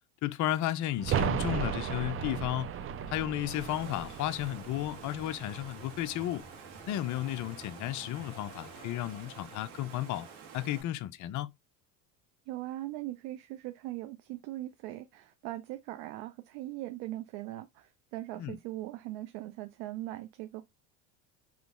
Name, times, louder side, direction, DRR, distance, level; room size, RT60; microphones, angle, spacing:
voice 1, 0.2-2.7 3.1-6.4 6.9-10.3 10.5-11.5 18.4-18.6, left 13 dB, 40° left, 0.5 m, -33 dB
sound 1, 1.0-6.6 6.8-6.9, right 8 dB, 30° right, 0.5 m, -35 dB
Water, 3.5-10.8, right 7 dB, 90° right, 1.9 m, -49 dB
sound 2, 4.0-9.6, left 1 dB, 15° left, 0.8 m, -54 dB
voice 2, 12.5-20.6, right 16 dB, 65° right, 0.7 m, -40 dB
5.1 x 3.1 x 2.5 m
supercardioid pair, 95°, 45 cm